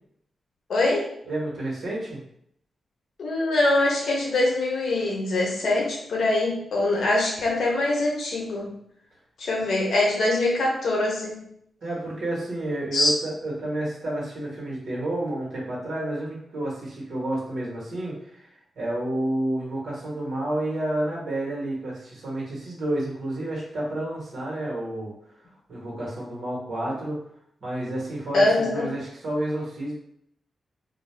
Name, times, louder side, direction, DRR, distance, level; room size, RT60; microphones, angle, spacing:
voice 1, 0.7-1.1 3.2-8.7 9.4-11.4 12.9-13.1 28.3-28.9, left 2 dB, 75° left, -2 dB, 0.8 m, -23 dB
voice 2, 1.3-2.2 11.8-18.5 18.7-25.1 25.7-27.2 27.6-29.9, right 1 dB, 70° right, -4 dB, 1.2 m, -30 dB
2.4 x 2.3 x 3.3 m, 0.71 s
cardioid pair, 65°, 0 cm